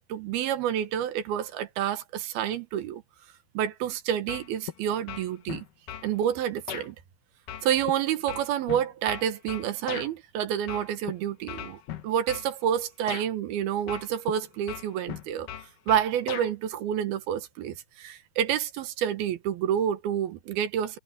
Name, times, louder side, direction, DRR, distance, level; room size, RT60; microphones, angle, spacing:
voice 1, 0.0-3.0 3.5-5.6 6.0-7.0 7.6-15.5 15.9-21.0, right 9 dB, 70° right, 2.8 m, -29 dB
sound 1, 4.3-4.8 5.1-6.1 6.7-6.9 7.5-10.1 10.7-11.1 11.5-12.5 13.1-13.3 13.9-14.4 14.7-16.5, left 10 dB, 65° left, 2.4 m, -38 dB
omnidirectional pair, 5.3 m